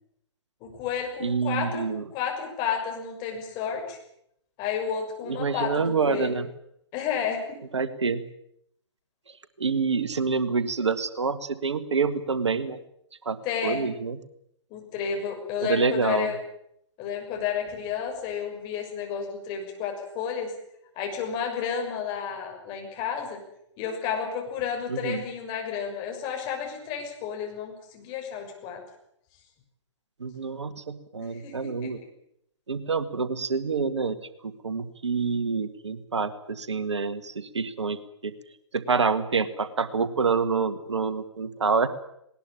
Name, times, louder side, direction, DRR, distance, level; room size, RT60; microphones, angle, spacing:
voice 1, 0.6-4.0 4.6-6.3 6.9-7.6 13.4-13.9 14.7-16.4 17.0-20.5 21.0-23.4 23.8-28.8 31.4-31.9, left 7 dB, 30° left, 2 dB, 6.4 m, -31 dB
voice 2, 1.2-2.0 5.2-6.5 7.7-8.3 9.6-12.8 13.2-14.2 15.6-16.3 24.9-25.2 30.2-32.0 32.7-34.2 34.4-38.3 38.7-41.9, right 5 dB, 70° right, 12 dB, 1.7 m, -27 dB
19.5 x 19.5 x 8.9 m, 0.75 s
figure-of-eight pair, 125°, 15 cm